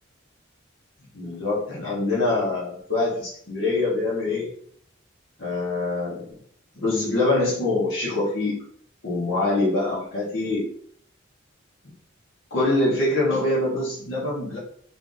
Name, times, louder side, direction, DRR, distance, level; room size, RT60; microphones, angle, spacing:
voice 1, 1.1-4.5 5.4-6.2 6.7-8.6 9.0-10.7 12.5-14.6, left 2 dB, 65° left, -8 dB, 1.2 m, -24 dB
3.3 x 2.5 x 3.9 m, 0.63 s
head